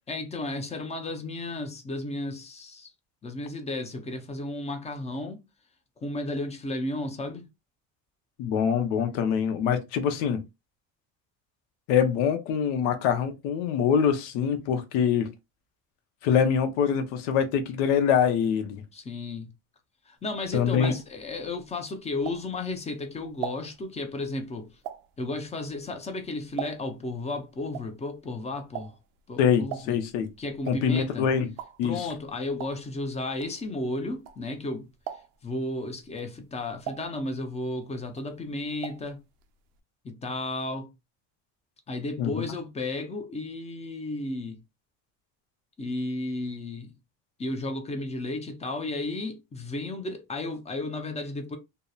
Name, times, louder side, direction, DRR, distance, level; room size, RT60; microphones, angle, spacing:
voice 1, 0.1-2.9 3.2-5.4 6.0-7.5 18.9-19.5 20.1-24.7 25.2-28.9 29.3-30.0 30.4-31.3 31.8-34.8 35.4-39.2 40.0-40.9 41.9-44.6 45.8-46.9 47.4-51.6, left 2 dB, 20° left, 0.5 m, -33 dB
voice 2, 8.4-10.4 11.9-15.3 16.2-18.8 20.5-20.9 29.4-30.3 30.7-31.5 31.8-32.1 42.2-42.4, left 7 dB, 85° left, 0.7 m, -24 dB
sound 1, 20.3-22.8 23.2-27.1 27.4-34.7 35.0-35.6 36.0-37.8 38.0-39.1 39.4-39.5 39.7-39.8, right 11 dB, 90° right, 0.5 m, -41 dB
2.8 x 2.0 x 2.3 m
cardioid pair, 130°, 36 cm